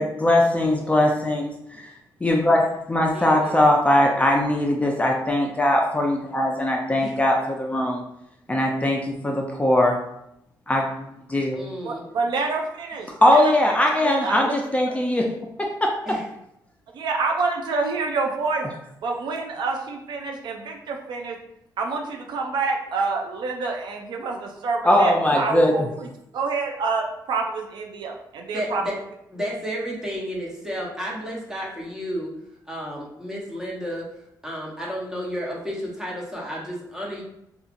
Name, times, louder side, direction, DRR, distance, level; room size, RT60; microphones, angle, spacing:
voice 1, 0.0-1.9 2.2-8.0 8.5-10.0 10.7-10.9 11.3-11.6 13.2-15.3 15.6-15.9 24.8-25.7, left 1 dB, 15° left, 0 dB, 0.5 m, -20 dB
voice 2, 0.6-1.1 3.1-3.6 7.0-7.1 11.5-12.1 16.1-16.2 28.5-29.0 29.3-32.3 32.7-34.1 34.4-37.2, equal, 10° right, -4 dB, 1.0 m, -32 dB
voice 3, 11.8-13.5 13.8-14.6 16.9-18.7 19.0-21.4 21.8-26.1 26.3-28.8, right 4 dB, 70° right, 2 dB, 0.4 m, -27 dB
2.8 x 2.3 x 2.5 m, 0.79 s
cardioid pair, 65°, 8 cm